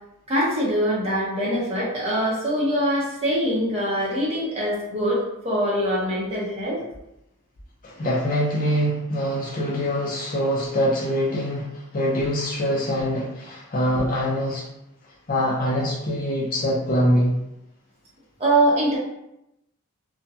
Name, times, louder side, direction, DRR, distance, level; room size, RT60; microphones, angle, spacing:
voice 1, 0.3-6.8 18.4-19.0, right 1 dB, 25° right, -6 dB, 0.7 m, -23 dB
voice 2, 7.8-14.6 15.3-17.4, equal, 40° left, -4 dB, 0.4 m, -24 dB
2.4 x 2.1 x 2.7 m, 0.85 s
head